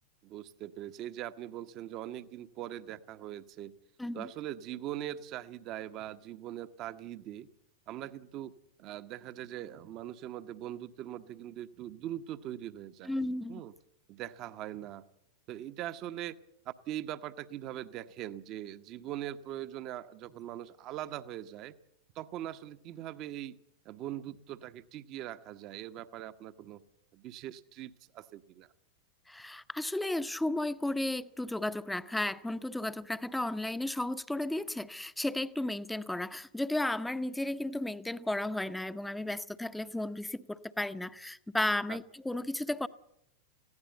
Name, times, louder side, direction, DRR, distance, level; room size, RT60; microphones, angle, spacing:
voice 1, 0.2-3.7 4.1-7.5 7.9-8.5 8.8-13.2 13.5-13.7 14.1-15.0 15.5-16.4 16.6-21.8 22.1-23.6 23.8-26.8 27.1-28.7 41.9-42.0, right 12 dB, 35° right, 12 dB, 1.0 m, -41 dB
voice 2, 13.0-13.6 29.3-42.9, left 1 dB, 5° left, 13 dB, 0.8 m, -34 dB
20.5 x 16.0 x 8.0 m, 0.78 s
figure-of-eight pair, 90°, 0 cm